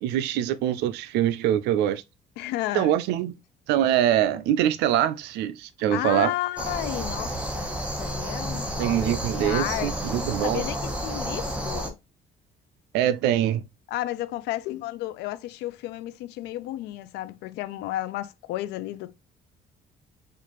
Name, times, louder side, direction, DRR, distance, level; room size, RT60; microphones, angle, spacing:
voice 1, 0.0-2.0 2.7-3.3 3.7-6.3 8.8-10.6 12.9-13.6, right 11 dB, 90° right, 0.4 m, -24 dB
voice 2, 2.4-3.0 5.9-12.0 13.9-19.2, left 15 dB, 85° left, 0.4 m, -33 dB
sound 1, 6.6-11.9, equal, 5° right, 0.9 m, -31 dB
4.4 x 2.5 x 2.9 m
cardioid pair, 110°, 17 cm